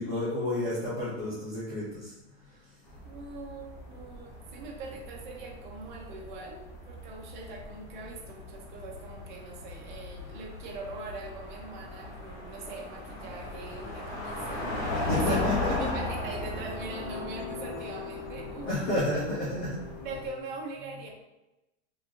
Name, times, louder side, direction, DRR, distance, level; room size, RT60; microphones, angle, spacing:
voice 1, 0.0-2.1 15.1-15.7 18.7-19.8, left 1 dB, 15° left, -10 dB, 0.4 m, -30 dB
sound 1, 2.9-20.3, left 2 dB, 35° left, 0.9 m, -38 dB
voice 2, 3.0-18.8 20.0-21.1, right 3 dB, 45° right, 0 dB, 0.7 m, -42 dB
sound 2, 15.1-20.4, left 4 dB, 65° left, 0.9 m, -42 dB
3.8 x 2.5 x 3.0 m, 0.98 s
supercardioid pair, 175°, 34 cm